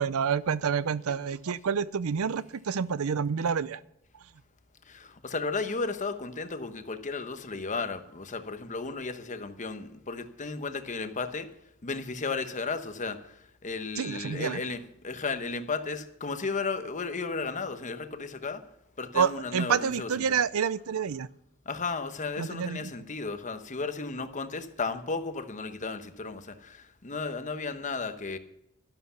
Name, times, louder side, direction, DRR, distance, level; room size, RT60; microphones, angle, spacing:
voice 1, 0.0-3.8 14.0-14.6 19.1-21.3 22.4-22.9, right 7 dB, 75° right, 0.5 m, -28 dB
voice 2, 4.9-11.5 11.8-13.2 13.6-18.6 19.0-20.1 21.7-28.4, left 4 dB, 35° left, 1.0 m, -34 dB
12.0 x 11.5 x 5.8 m
head